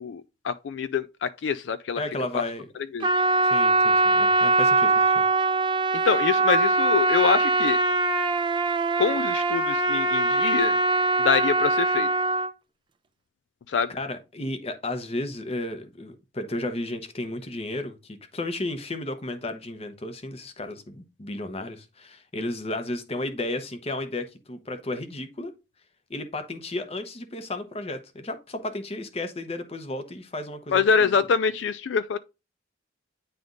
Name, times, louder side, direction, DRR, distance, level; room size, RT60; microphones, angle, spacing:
voice 1, 0.0-2.0 2.9-3.1 6.0-7.8 9.0-10.8 11.2-12.1 13.7-13.9 30.7-32.2, left 6 dB, 75° left, 0.4 m, -25 dB
voice 2, 2.0-2.7 3.4-5.2 13.9-25.5 26.1-31.1, left 2 dB, 35° left, 0.9 m, -33 dB
Trumpet, 3.0-12.5, right 3 dB, 25° right, 0.4 m, -22 dB
9.3 x 3.4 x 3.8 m
head